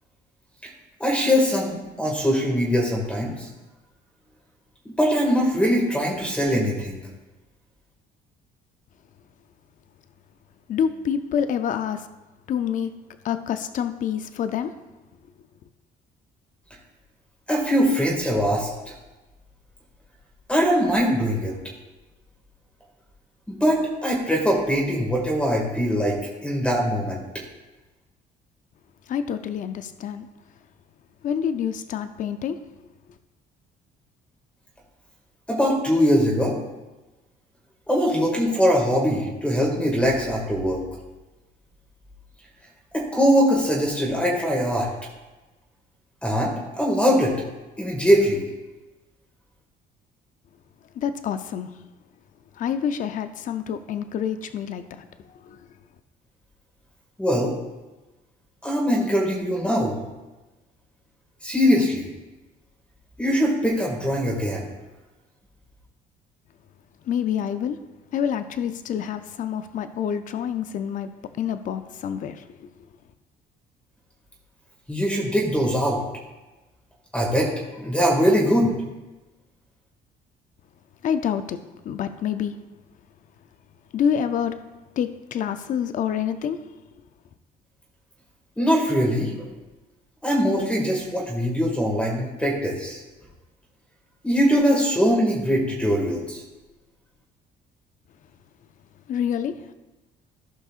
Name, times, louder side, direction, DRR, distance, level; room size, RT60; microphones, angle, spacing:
voice 1, 1.0-3.5 5.0-7.0 17.5-18.7 20.5-21.5 23.5-27.2 35.5-36.6 37.9-40.8 42.9-44.9 46.2-47.3 47.8-48.4 57.2-57.5 58.6-60.0 61.4-62.1 63.2-64.7 74.9-76.0 77.1-77.5 77.8-78.7 88.6-89.5 90.2-93.0 94.2-96.4, equal, 5° left, -2 dB, 2.0 m, -22 dB
voice 2, 10.7-12.1 12.5-12.9 13.2-14.7 29.1-30.3 31.2-32.6 51.0-51.7 52.6-55.0 55.4-55.6 67.1-67.8 68.1-71.1 71.4-72.7 81.0-81.6 81.8-82.5 83.9-84.5 85.0-86.6 99.1-99.7, left 8 dB, 50° left, 10 dB, 0.5 m, -27 dB
15.5 x 5.4 x 2.5 m, 1.1 s
cardioid pair, 110°, 17 cm